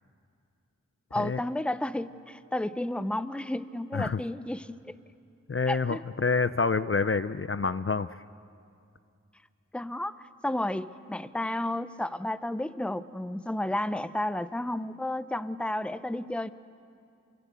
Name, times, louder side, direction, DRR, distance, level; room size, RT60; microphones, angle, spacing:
voice 1, 1.1-4.9 5.7-6.0 9.7-16.5, left 1 dB, 5° left, 13 dB, 0.7 m, -32 dB
voice 2, 5.5-8.2, left 4 dB, 45° left, 13 dB, 0.6 m, -27 dB
27.5 x 24.5 x 8.3 m, 2.4 s
wide cardioid pair, 50°, 31 cm